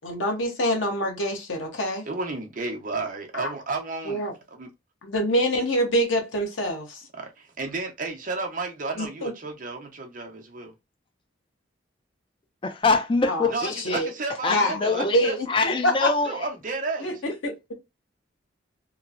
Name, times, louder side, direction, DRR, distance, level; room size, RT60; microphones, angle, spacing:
voice 1, 0.0-2.0 3.3-3.5 4.1-4.3 5.0-7.0 9.0-9.3 13.3-13.5 13.8-14.1 14.5-16.1 17.0-17.1 17.4-17.5, equal, 90° left, 0.9 m, -25 dB
voice 2, 2.1-4.7 7.1-10.7 13.5-15.4 16.2-17.2, right 3 dB, 45° right, 0.6 m, -32 dB
voice 3, 12.6-14.0 14.4-16.3, left 3 dB, 25° left, 0.3 m, -24 dB
3.0 x 2.0 x 2.4 m
head